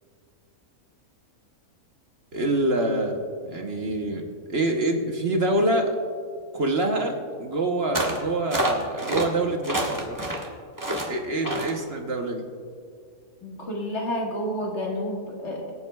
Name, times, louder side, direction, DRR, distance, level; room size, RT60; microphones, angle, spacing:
voice 1, 2.3-3.2 3.4-5.9 6.5-10.2 11.1-12.4, right 2 dB, 50° right, 3 dB, 1.1 m, -26 dB
sound 1, 7.9-8.2 8.5-9.3 9.6-10.5 10.8-11.1 11.4-11.7, right 1 dB, 15° right, 1.2 m, -27 dB
voice 2, 13.4-15.7, equal, 50° left, -2 dB, 2.0 m, -30 dB
24.0 x 8.5 x 2.3 m, 2.2 s
omnidirectional pair, 1.6 m